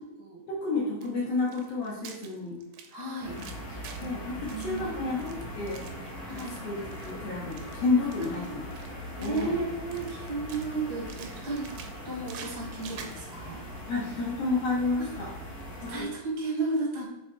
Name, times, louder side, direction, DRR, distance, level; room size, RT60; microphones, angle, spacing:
voice 1, 0.5-2.6 4.0-5.9 6.3-8.7 9.2-9.5 13.9-15.3 15.8-16.1, left 3 dB, 60° left, -4 dB, 1.7 m, -30 dB
sound 1, 1.0-4.2 4.5-6.6 6.9-7.1 7.4-7.8 8.1-9.6 9.9-10.8 11.1-13.2, right 7 dB, 80° right, 1.8 m, -48 dB
voice 2, 2.9-3.4 4.4-5.2 6.3-6.6 8.3-8.6 9.2-11.7 12.0-13.6 15.0-15.1 15.9-17.1, right 3 dB, 50° right, -2 dB, 1.2 m, -34 dB
sound 2, 3.2-16.0, equal, 80° left, 0.8 m, -41 dB
5.4 x 4.7 x 4.7 m, 0.93 s
omnidirectional pair, 4.3 m